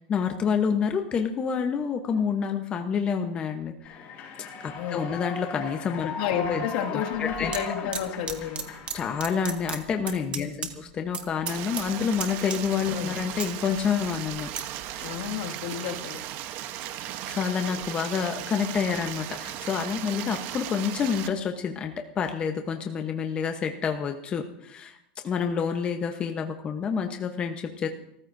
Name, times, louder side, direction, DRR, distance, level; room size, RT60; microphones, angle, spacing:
voice 1, 0.1-4.0 4.6-6.1 6.5-6.6 6.9-7.5 8.9-14.5 15.0-15.1 17.3-25.0 25.2-27.9, left 6 dB, 20° left, 5 dB, 0.9 m, -28 dB
Human voice / Clapping / Cheering, 3.8-9.8, left 4 dB, 40° left, 4.7 m, -38 dB
voice 2, 4.7-5.2 6.0-8.7 10.4-10.8 12.9-13.2 15.0-16.2, left 9 dB, 70° left, 2 dB, 2.1 m, -32 dB
sound 1, 7.1-7.6 7.9-9.0 9.2-10.7 11.0-11.2 11.5-11.9 12.2-12.9 13.2-14.6 15.1-15.3, right 6 dB, 25° right, 1.4 m, -34 dB
Stream, 11.5-21.3, right 12 dB, 45° right, 0.9 m, -37 dB
30.0 x 14.5 x 2.7 m, 0.77 s
supercardioid pair, 155°, 5 cm